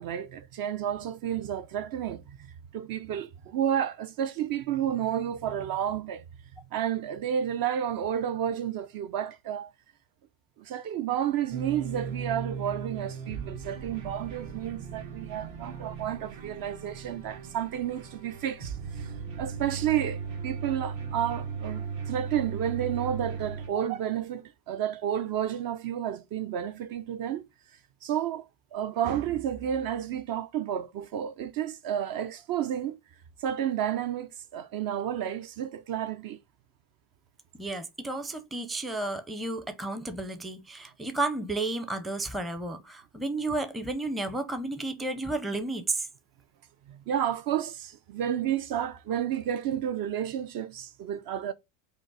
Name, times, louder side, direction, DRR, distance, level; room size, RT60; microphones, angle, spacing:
voice 1, 0.0-2.4 2.7-6.2 6.7-9.7 10.6-19.1 19.4-27.5 28.0-33.0 33.4-36.4 46.9-51.5, right 10 dB, 50° right, 0.6 m, -31 dB
sound 1, 11.5-23.7, right 6 dB, 70° right, 1.6 m, -37 dB
voice 2, 37.5-46.1, right 2 dB, ahead, 0.5 m, -32 dB
5.3 x 2.0 x 4.6 m
supercardioid pair, 95°, 48 cm